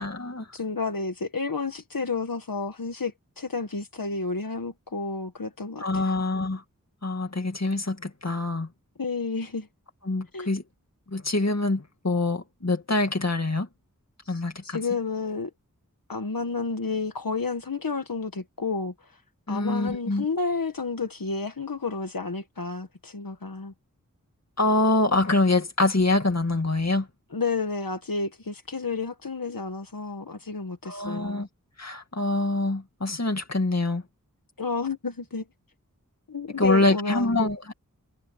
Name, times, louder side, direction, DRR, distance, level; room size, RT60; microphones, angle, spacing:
voice 1, 0.0-0.5 5.8-6.6 7.0-8.7 10.1-10.6 11.1-13.7 14.3-14.8 19.5-20.2 24.6-27.1 30.8-31.5 31.8-34.0 36.6-37.7, left 2 dB, 50° left, 2.2 m, -25 dB
voice 2, 0.5-6.2 9.0-9.7 10.3-10.5 14.2-15.5 16.1-19.2 19.5-23.7 27.3-31.5 34.6-35.5 36.3-37.4, left 4 dB, 85° left, 1.5 m, -31 dB
wide cardioid pair, 40°, 34 cm